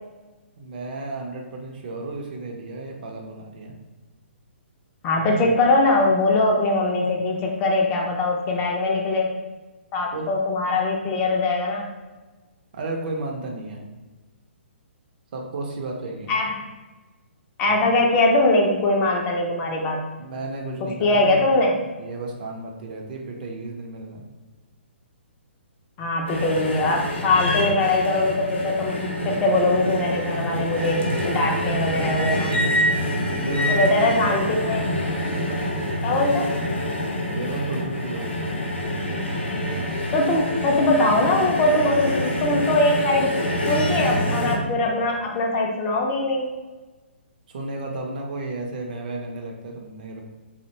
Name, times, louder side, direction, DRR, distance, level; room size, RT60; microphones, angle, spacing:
voice 1, 0.6-3.7 10.1-10.3 12.7-13.8 15.3-16.4 20.2-21.6 22.0-24.2 33.4-34.5 37.3-38.5 47.5-50.2, right 2 dB, 45° right, 1 dB, 0.4 m, -32 dB
voice 2, 5.0-9.3 9.9-11.9 16.3-16.5 17.6-20.0 21.0-21.8 26.0-32.6 33.7-34.8 36.0-36.5 40.1-43.4 43.7-46.5, left 2 dB, 20° left, -1 dB, 0.3 m, -21 dB
sound 1, 26.3-44.6, equal, 65° left, 0.6 m, -26 dB
2.4 x 2.1 x 2.8 m, 1.2 s
figure-of-eight pair, 125°, 7 cm